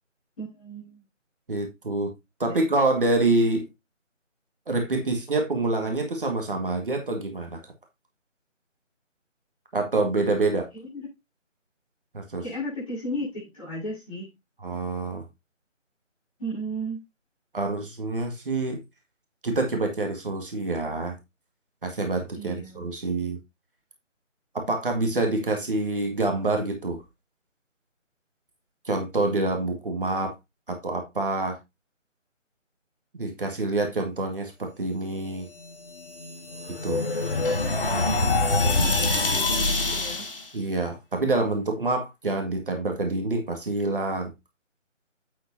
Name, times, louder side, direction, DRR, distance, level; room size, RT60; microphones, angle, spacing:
voice 1, 0.4-1.0 2.5-2.6 10.7-11.1 12.4-14.3 16.4-17.0 22.3-22.9 38.8-40.3, right 1 dB, 25° left, 5.6 m, -35 dB
voice 2, 1.5-2.1 2.4-3.7 4.7-7.6 9.7-10.7 12.1-12.4 14.6-15.2 17.5-18.8 19.4-21.2 21.8-23.4 24.5-27.0 28.9-30.4 30.7-31.6 33.1-35.5 36.8-37.0 38.6-38.8 40.5-44.3, right 2 dB, 45° right, 1.9 m, -26 dB
sound 1, 36.0-40.5, left 2 dB, 45° left, 1.9 m, -25 dB
8.6 x 7.7 x 2.7 m
figure-of-eight pair, 165°, 38 cm